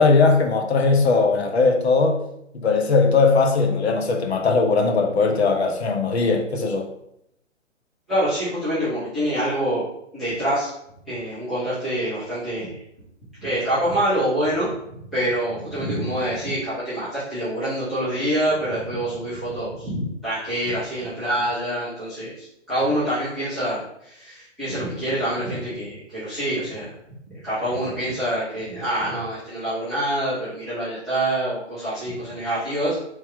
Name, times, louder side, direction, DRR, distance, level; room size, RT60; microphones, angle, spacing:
voice 1, 0.0-2.2 2.5-6.9, left 4 dB, 60° left, 3 dB, 0.9 m, -19 dB
voice 2, 8.1-9.9 10.1-10.7 11.1-12.8 13.4-14.7 15.1-26.9 27.4-33.0, right 1 dB, ahead, -15 dB, 0.4 m, -26 dB
4.3 x 3.3 x 3.6 m, 0.76 s
hypercardioid pair, 145°, 37 cm